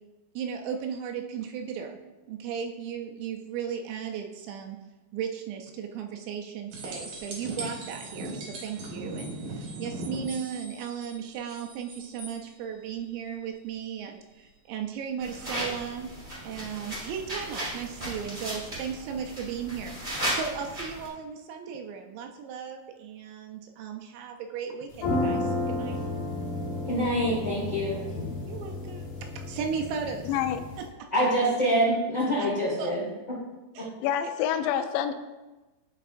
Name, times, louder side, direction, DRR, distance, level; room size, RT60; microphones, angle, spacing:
voice 1, 0.4-2.0 2.3-4.8 5.1-16.1 16.4-26.0 28.5-30.3 31.0-31.1 32.4-32.5 32.8-32.9 33.8-33.9 34.2-34.3, right 7 dB, 85° right, 3 dB, 2.7 m, -36 dB
sound 1, 6.7-12.4 15.3-15.4, right 2 dB, 60° right, 2.1 m, -39 dB
sound 2, 15.2-21.1, right 1 dB, 30° right, 0.7 m, -35 dB
sound 3, 24.9-30.8, left 2 dB, 65° left, 2.1 m, -32 dB
voice 2, 26.8-28.0 31.1-33.3 33.8-33.9, equal, 45° left, -8 dB, 1.1 m, -26 dB
voice 3, 30.2-30.6 34.0-35.1, left 9 dB, 85° left, 9 dB, 2.8 m, -27 dB
11.5 x 4.6 x 2.5 m, 1.1 s
omnidirectional pair, 5.2 m